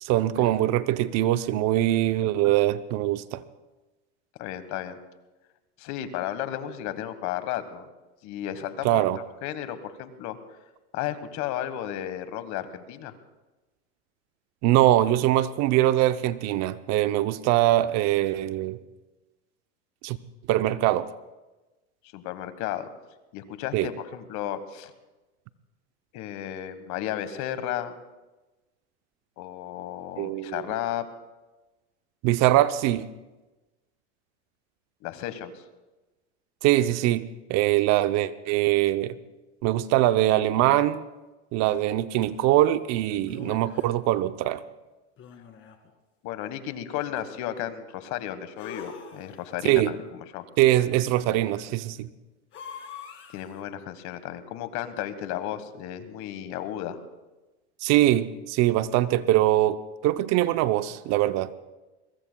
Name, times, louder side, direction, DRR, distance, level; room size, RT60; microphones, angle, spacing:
voice 1, 0.0-3.4 8.8-9.2 14.6-18.8 20.0-20.2 20.5-21.1 23.7-23.9 30.2-30.6 32.2-33.1 36.6-37.2 37.5-39.2 39.6-41.0 41.5-44.6 49.6-49.9 50.6-52.1 57.8-61.5, right 14 dB, 50° right, 13 dB, 0.7 m, -22 dB
voice 2, 4.4-5.0 5.8-7.9 8.2-9.1 9.4-10.4 10.9-13.1 22.1-22.9 23.3-24.9 26.1-27.9 29.4-31.1 35.0-35.5 46.2-50.4 53.3-57.0, left 11 dB, 50° left, 11 dB, 1.5 m, -33 dB
sound 1, 42.2-42.3 43.2-44.0 45.2-45.9 48.6-49.6 52.5-53.6, left 6 dB, 35° left, 2.1 m, -43 dB
22.0 x 22.0 x 2.3 m, 1.1 s
supercardioid pair, 110°, 35 cm